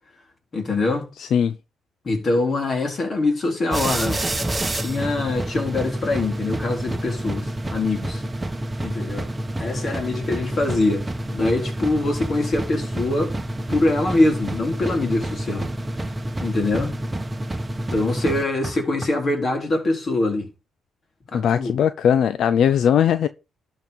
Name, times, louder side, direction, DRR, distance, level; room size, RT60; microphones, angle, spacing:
voice 1, 0.5-1.1 2.0-4.2 4.7-8.2 8.8-9.3 9.6-11.1 11.3-13.3 13.7-15.7 16.4-16.9 17.9-20.5 21.3-21.8, left 2 dB, 40° left, 3.9 m, -23 dB
voice 2, 1.2-1.5 21.3-23.3, left 8 dB, 70° left, 0.5 m, -19 dB
sound 1, 3.7-19.1, right 1 dB, 15° right, 1.3 m, -28 dB
12.0 x 4.5 x 5.3 m
cardioid pair, 90°, 0 cm